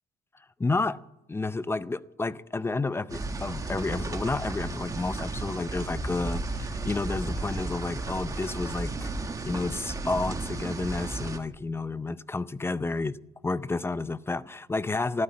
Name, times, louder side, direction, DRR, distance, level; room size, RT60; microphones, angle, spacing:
voice 1, 0.6-1.0 1.3-9.1 9.4-13.2 13.4-15.2, left 3 dB, 15° left, 0.5 m, -30 dB
sound 1, 3.1-11.4, right 2 dB, 20° right, 1.3 m, -34 dB
14.0 x 12.0 x 8.4 m
cardioid pair, 110°, 17 cm